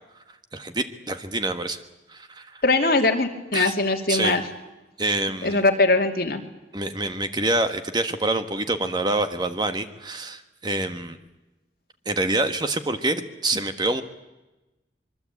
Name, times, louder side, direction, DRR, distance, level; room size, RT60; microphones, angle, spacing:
voice 1, 0.5-1.8 2.1-2.6 3.5-3.7 4.1-4.3 5.0-5.6 6.7-11.2 12.1-14.0, right 2 dB, 25° right, 8 dB, 1.4 m, -26 dB
voice 2, 2.6-4.4 5.4-6.4, left 3 dB, 55° left, 4 dB, 2.7 m, -21 dB
25.5 x 23.0 x 8.5 m, 1.0 s
head